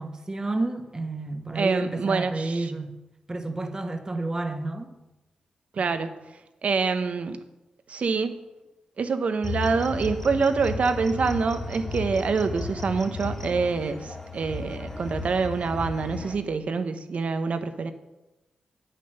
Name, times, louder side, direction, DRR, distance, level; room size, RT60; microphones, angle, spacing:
voice 1, 0.0-3.0 3.3-4.9, right 2 dB, 25° right, 1.4 m, -30 dB
voice 2, 1.5-2.7 5.7-6.1 6.6-7.4 7.9-8.4 9.0-17.9, right 4 dB, 65° right, 1.0 m, -26 dB
sound 1, 9.4-16.4, left 3 dB, 15° left, 2.1 m, -34 dB
8.9 x 8.6 x 6.8 m
cardioid pair, 60°, 2 cm